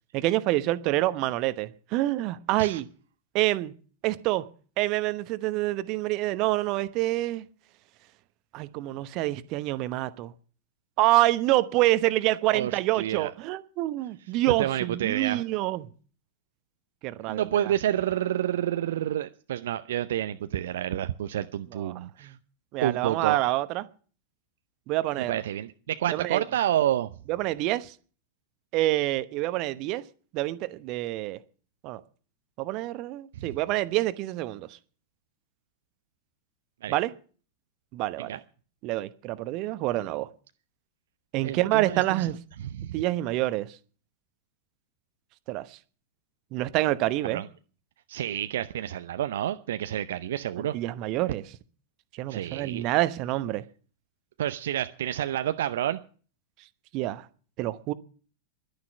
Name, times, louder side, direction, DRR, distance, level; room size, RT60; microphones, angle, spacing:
voice 1, 0.1-2.9 3.3-3.7 4.0-4.4 4.8-7.4 8.5-10.3 11.0-15.9 17.0-17.7 21.7-22.3 22.7-23.9 24.9-25.3 26.1-26.4 27.3-27.9 28.7-30.0 30.3-31.4 31.8-32.0 32.6-34.8 36.9-37.1 37.9-38.4 38.8-40.3 41.3-42.4 42.9-43.8 45.5-45.8 46.5-47.4 50.6-51.4 52.1-53.6 56.9-57.3 57.6-57.9, right 17 dB, 40° right, 1.0 m, -27 dB
voice 2, 13.0-13.3 14.6-15.4 17.2-22.3 22.8-23.4 25.3-27.1 33.4-33.5 36.8-36.9 38.2-38.4 41.4-42.3 42.8-43.0 47.3-47.5 48.1-50.7 52.3-52.8 54.4-56.0, right 11 dB, 60° right, 0.7 m, -29 dB
12.0 x 10.0 x 8.5 m
figure-of-eight pair, 90°, 0 cm